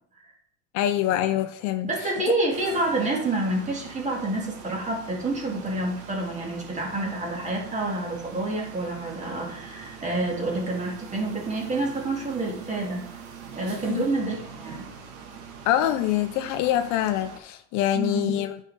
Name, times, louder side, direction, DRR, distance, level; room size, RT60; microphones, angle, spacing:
voice 1, 0.7-1.9 13.8-14.0 15.7-18.6, left 12 dB, 55° left, 11 dB, 0.6 m, -25 dB
voice 2, 1.8-13.1 13.5-14.9 17.9-18.4, right 2 dB, 20° right, -1 dB, 2.5 m, -28 dB
sound 1, 2.5-17.4, right 5 dB, 75° right, 1.8 m, -43 dB
9.1 x 5.4 x 3.6 m, 0.69 s
supercardioid pair, 110°, 33 cm